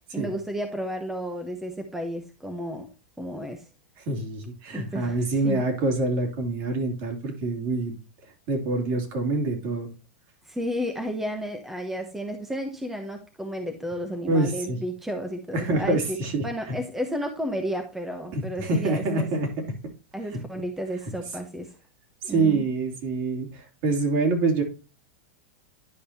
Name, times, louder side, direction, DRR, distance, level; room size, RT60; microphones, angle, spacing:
voice 1, 0.1-2.9 3.2-3.7 4.7-5.7 10.5-16.2 16.4-19.3 20.1-21.7 22.3-22.7, equal, 5° right, 4 dB, 1.0 m, -32 dB
voice 2, 4.0-7.9 8.5-9.9 14.2-14.8 15.5-16.8 18.3-19.5 20.3-20.4 22.2-24.6, right 3 dB, 50° right, 3 dB, 2.8 m, -26 dB
10.5 x 5.2 x 2.8 m, 0.32 s
hypercardioid pair, 130°, 6 cm